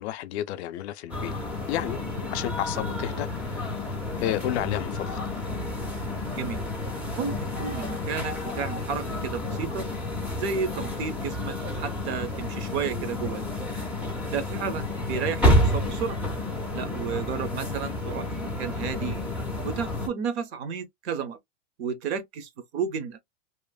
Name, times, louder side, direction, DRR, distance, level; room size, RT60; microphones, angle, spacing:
voice 1, 0.0-1.3 1.7-2.0 2.3-3.8 4.2-5.2, left 12 dB, 60° left, 0.5 m, -31 dB
sound 1, 1.1-20.1, left 1 dB, 5° right, 0.4 m, -30 dB
voice 2, 7.2-9.9 10.4-13.5 14.3-16.2 16.7-19.2 19.6-21.4 21.8-23.2, right 6 dB, 60° right, 0.8 m, -32 dB
2.9 x 2.0 x 2.3 m
supercardioid pair, 150°, 37 cm